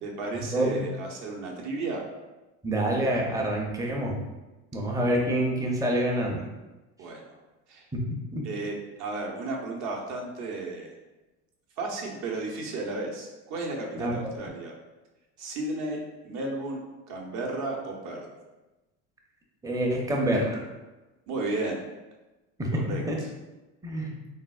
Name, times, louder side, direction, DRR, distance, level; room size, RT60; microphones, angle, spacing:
voice 1, 0.0-2.0 7.0-7.4 7.7-7.9 8.4-10.9 11.8-14.7 15.4-18.3 21.3-21.8 22.7-23.3, right 2 dB, 55° right, 0 dB, 0.7 m, -34 dB
voice 2, 0.5-0.8 2.6-4.2 4.7-6.4 7.9-8.0 8.3-8.4 13.9-14.2 19.6-20.6 22.6-23.2 23.8-24.1, right 1 dB, 10° right, -1 dB, 0.5 m, -27 dB
3.4 x 2.0 x 2.3 m, 1.1 s
supercardioid pair, 95°, 34 cm